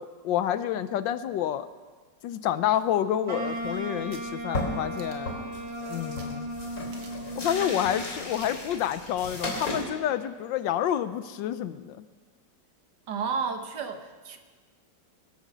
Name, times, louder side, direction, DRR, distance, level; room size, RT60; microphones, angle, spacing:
voice 1, 0.0-1.7 2.2-5.3 5.9-6.5 7.4-12.0, left 10 dB, 75° left, 13 dB, 1.3 m, -28 dB
sound 1, 2.7-3.7 4.1-4.3 4.9-5.4 6.2-6.3 6.6-6.7 6.9-7.3 7.7-7.8 8.3-8.7 9.6-9.9 10.2-10.3, right 4 dB, 90° right, 2.3 m, -51 dB
Wind instrument woodwind instrument, 3.3-8.3, equal, 15° right, 1.4 m, -36 dB
sound 2, 3.5-3.9 4.2-4.3 4.5-4.9 5.2-9.8, left 1 dB, 45° left, 3.8 m, -36 dB
voice 2, 13.1-14.4, right 5 dB, 65° right, 6 dB, 1.6 m, -31 dB
22.0 x 8.2 x 6.7 m, 1.4 s
omnidirectional pair, 2.1 m